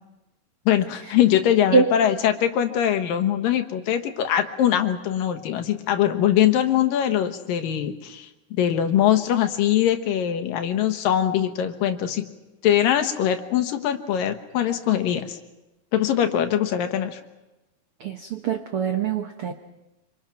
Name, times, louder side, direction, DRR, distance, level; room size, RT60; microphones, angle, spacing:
voice 1, 0.7-12.2 12.6-15.4 15.9-17.2, left 10 dB, 70° left, 7 dB, 2.9 m, -22 dB
voice 2, 18.0-19.5, right 5 dB, 80° right, 6 dB, 1.2 m, -23 dB
26.0 x 26.0 x 5.9 m, 1.0 s
omnidirectional pair, 4.2 m